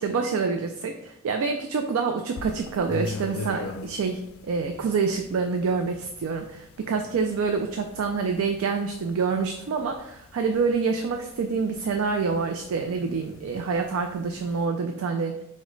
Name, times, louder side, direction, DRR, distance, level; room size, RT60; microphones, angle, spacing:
voice 1, 0.0-4.2 4.5-15.4, right 5 dB, 75° right, 4 dB, 0.3 m, -27 dB
sound 1, 2.3-14.7, left 3 dB, 70° left, 0.4 m, -42 dB
4.9 x 2.1 x 3.8 m, 0.82 s
head